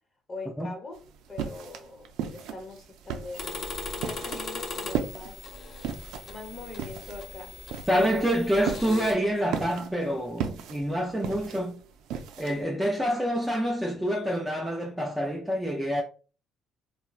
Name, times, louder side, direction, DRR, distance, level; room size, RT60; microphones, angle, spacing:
voice 1, 0.3-1.0 1.3-5.4 6.3-7.6 7.9-8.1, left 2 dB, 25° left, 1.0 m, -42 dB
sound 1, 0.9-12.6, right 8 dB, 85° right, 0.4 m, -36 dB
sound 2, 3.3-9.1, left 3 dB, 45° left, 0.7 m, -39 dB
voice 2, 7.9-11.8 12.4-16.0, equal, 5° right, 0.5 m, -27 dB
4.2 x 2.1 x 2.4 m
cardioid pair, 150°, 0 cm